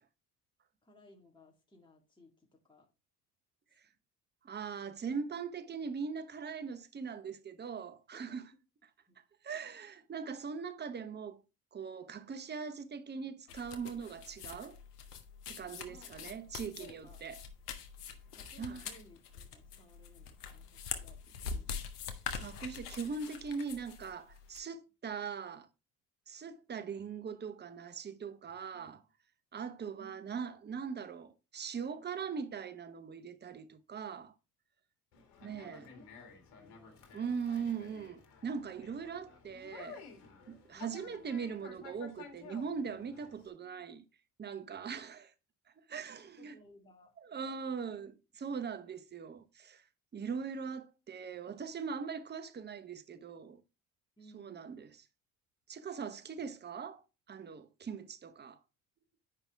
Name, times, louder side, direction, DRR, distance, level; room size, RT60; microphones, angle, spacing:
voice 1, 0.8-2.9 8.1-8.4 9.1-9.2 15.9-16.3 16.8-17.3 18.3-21.9 28.7-29.0 30.0-30.4 35.4-37.0 40.7-41.3 46.1-47.1 54.2-54.8, left 1 dB, 10° left, 1.8 m, -60 dB
voice 2, 4.4-8.5 9.4-11.4 11.7-14.8 15.5-17.4 18.6-18.8 22.3-25.7 26.3-29.0 29.5-34.3 35.4-35.9 37.1-40.0 40.5-44.0 44.4-45.3 45.9-46.5 47.2-49.8 50.1-53.6 54.3-55.0 55.7-57.0 57.3-58.6, right 6 dB, 20° right, 0.9 m, -41 dB
sound 1, 13.5-24.6, left 6 dB, 85° left, 1.0 m, -44 dB
Conversation, 35.1-43.5, left 5 dB, 65° left, 2.0 m, -53 dB
8.4 x 5.4 x 3.4 m
hypercardioid pair, 65°, 46 cm